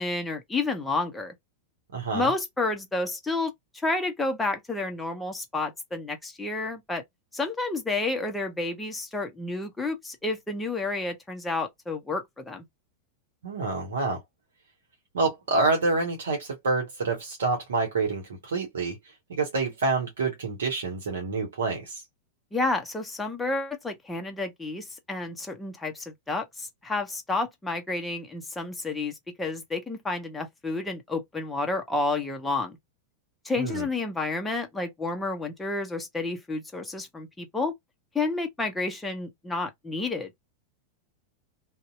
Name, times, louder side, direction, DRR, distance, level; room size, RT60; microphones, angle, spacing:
voice 1, 0.0-1.3 2.1-7.0 7.3-12.6 22.5-32.8 33.4-37.7 38.1-40.4, left 3 dB, 10° left, 0.6 m, -30 dB
voice 2, 1.9-2.3 13.4-14.2 15.1-19.0 19.3-22.0 33.6-33.9, right 3 dB, 65° right, 0.8 m, -27 dB
2.6 x 2.0 x 2.4 m
figure-of-eight pair, 90°, 0 cm